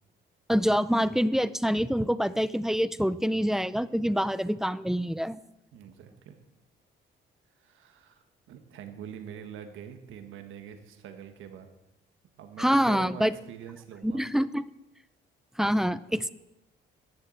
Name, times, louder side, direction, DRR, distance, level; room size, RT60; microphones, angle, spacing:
voice 1, 0.5-5.4 12.6-13.3 14.0-14.6 15.6-16.3, equal, ahead, 16 dB, 0.4 m, -26 dB
voice 2, 5.7-6.4 7.6-11.7 12.4-14.2, right 8 dB, 85° right, 7 dB, 1.3 m, -44 dB
10.5 x 6.8 x 7.7 m, 0.91 s
cardioid pair, 90°, 20 cm